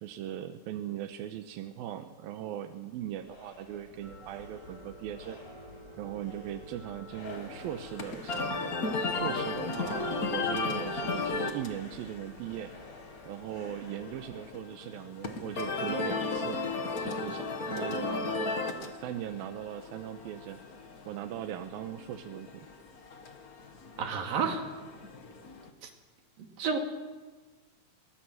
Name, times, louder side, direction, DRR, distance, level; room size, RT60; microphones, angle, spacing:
voice 1, 0.0-5.4 6.0-8.7 9.1-12.7 13.3-16.6 17.0-20.6 21.1-22.7, right 11 dB, 90° right, 7 dB, 2.7 m, -39 dB
sound 1, 2.7-14.5, left 2 dB, 75° left, 6.0 m, -53 dB
sound 2, 4.0-12.6, right 1 dB, 30° right, 4.8 m, -51 dB
sound 3, 7.2-25.7, left 3 dB, 45° left, 1.1 m, -36 dB
voice 2, 24.0-24.6 26.6-26.8, right 6 dB, 75° right, 3 dB, 4.2 m, -29 dB
23.5 x 20.0 x 7.9 m, 1.3 s
omnidirectional pair, 4.2 m